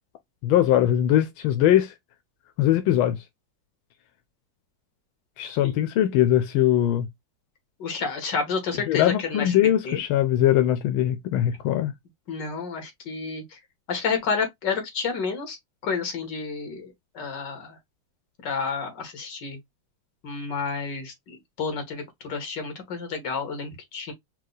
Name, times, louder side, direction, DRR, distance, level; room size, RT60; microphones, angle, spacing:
voice 1, 0.4-1.9 2.6-3.2 5.4-7.1 8.9-11.9, left 12 dB, 90° left, 1.4 m, -21 dB
voice 2, 7.8-9.5 9.8-10.0 12.3-13.6 13.9-15.6 15.8-17.8 18.4-19.6 20.2-24.1, left 5 dB, 60° left, 2.1 m, -30 dB
4.7 x 2.3 x 3.9 m
omnidirectional pair, 2.2 m